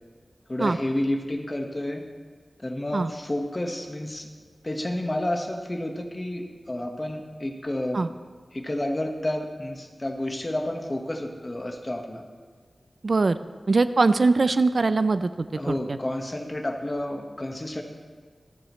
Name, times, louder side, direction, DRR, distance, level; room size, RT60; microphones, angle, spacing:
voice 1, 0.5-2.0 2.6-4.3 4.6-8.0 8.5-12.2 15.5-17.8, left 1 dB, 30° left, 3 dB, 1.4 m, -30 dB
voice 2, 13.0-13.4 13.7-16.0, right 3 dB, 60° right, 12 dB, 0.4 m, -22 dB
25.5 x 8.8 x 3.2 m, 1.5 s
wide cardioid pair, 85°, 0 cm